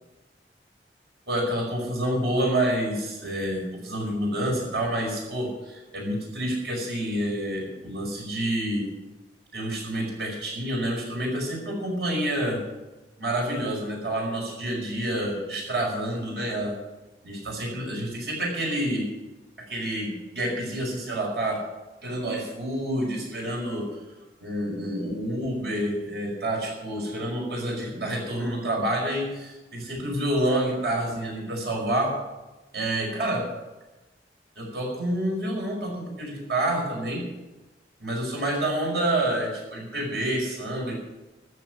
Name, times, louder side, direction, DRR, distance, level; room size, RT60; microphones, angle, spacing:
voice 1, 1.3-8.9 9.5-12.6 13.2-16.7 17.2-19.1 19.6-21.6 22.0-23.9 24.4-32.2 32.7-33.4 34.6-37.2 38.0-41.0, right 1 dB, 65° right, 0 dB, 5.4 m, -28 dB
14.0 x 7.1 x 9.6 m, 1.1 s
head